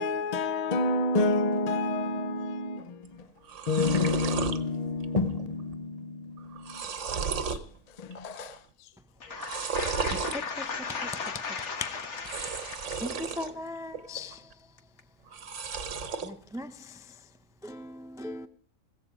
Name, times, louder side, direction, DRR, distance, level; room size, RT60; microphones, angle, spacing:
voice 1, 0.0-3.3 3.7-8.9 9.3-9.4, left 3 dB, 40° left, 0.7 m, -30 dB
sound 1, 3.1-3.2 3.4-4.6 5.0-5.5 5.7-5.8 6.4-7.7 8.1-8.6 9.3-10.4 12.1-13.5 13.9-14.5 15.3-16.3, right 5 dB, 60° right, 1.3 m, -34 dB
voice 2, 9.2-13.0, left 5 dB, 60° left, 1.5 m, -36 dB
voice 3, 13.0-14.4 16.2-16.7 17.6-18.5, left 1 dB, 5° right, 0.3 m, -38 dB
15.5 x 14.5 x 5.0 m
omnidirectional pair, 1.4 m